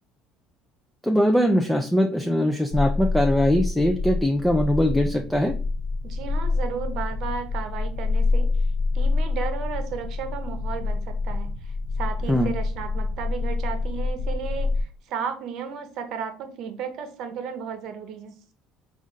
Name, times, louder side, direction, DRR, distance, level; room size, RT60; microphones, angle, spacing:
voice 1, 1.0-5.6 12.3-12.5, equal, 5° left, 3 dB, 0.4 m, -21 dB
sound 1, 2.7-14.8, left 3 dB, 60° left, 0.7 m, -27 dB
voice 2, 6.0-8.5 8.9-18.3, right 7 dB, 65° right, 8 dB, 0.8 m, -34 dB
4.0 x 2.5 x 3.7 m, 0.39 s
supercardioid pair, 110°, 0 cm